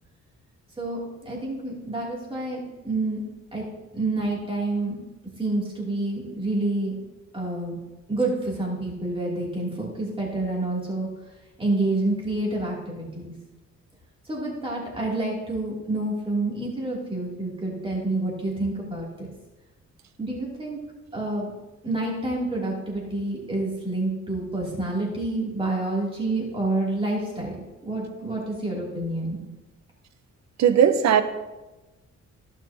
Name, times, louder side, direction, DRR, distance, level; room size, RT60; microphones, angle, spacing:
voice 1, 0.8-3.2 3.5-3.6 3.9-5.0 5.4-7.0 7.3-7.8 8.1-11.1 11.6-13.3 14.2-19.3 20.2-20.8 21.1-21.5 21.8-29.4, right 2 dB, 20° right, 2.7 m, -28 dB
voice 2, 30.6-31.2, right 8 dB, 65° right, 0.8 m, -17 dB
15.0 x 5.8 x 2.8 m
cardioid pair, 120°, 29 cm